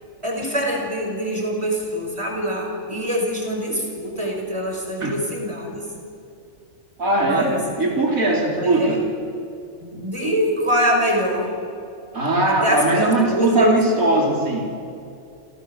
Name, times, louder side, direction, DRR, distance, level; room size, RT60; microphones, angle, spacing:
voice 1, 0.2-5.9 7.2-7.6 8.6-9.0 9.8-11.5 12.5-13.8, equal, 20° right, 1 dB, 5.8 m, -24 dB
voice 2, 7.0-9.0 12.1-14.8, right 2 dB, 85° right, 1 dB, 4.2 m, -20 dB
29.0 x 28.0 x 7.3 m, 2.5 s
omnidirectional pair, 1.4 m